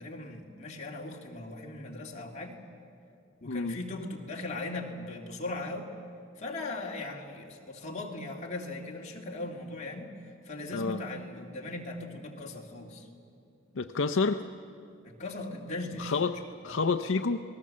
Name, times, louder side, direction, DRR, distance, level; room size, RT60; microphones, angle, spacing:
voice 1, 0.0-2.6 3.4-5.9 6.4-10.1 10.5-13.1 15.0-16.1 16.6-16.7, left 2 dB, 35° left, -1 dB, 2.3 m, -39 dB
voice 2, 3.5-3.8 10.7-11.0 13.7-14.4 16.0-16.4 16.6-17.4, left 4 dB, 70° left, 7 dB, 0.6 m, -28 dB
28.0 x 19.5 x 7.5 m, 2.5 s
head